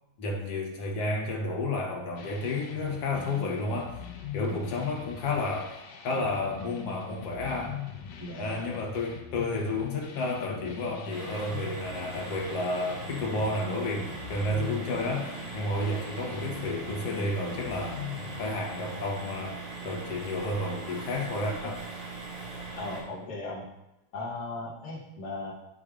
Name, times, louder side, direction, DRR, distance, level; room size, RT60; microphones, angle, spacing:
voice 1, 0.2-4.0 4.3-5.7 6.0-7.8 8.4-18.0 18.4-21.8, left 2 dB, 60° left, -1 dB, 1.9 m, -31 dB
sound 1, 2.2-18.5, left 8 dB, 80° left, 2.1 m, -42 dB
voice 2, 8.2-8.6 22.7-23.7 24.1-25.5, left 2 dB, 40° left, -5 dB, 1.8 m, -37 dB
sound 2, 11.1-23.0, right 4 dB, 55° right, 3.6 m, -40 dB
9.7 x 6.6 x 2.5 m, 0.92 s
omnidirectional pair, 3.5 m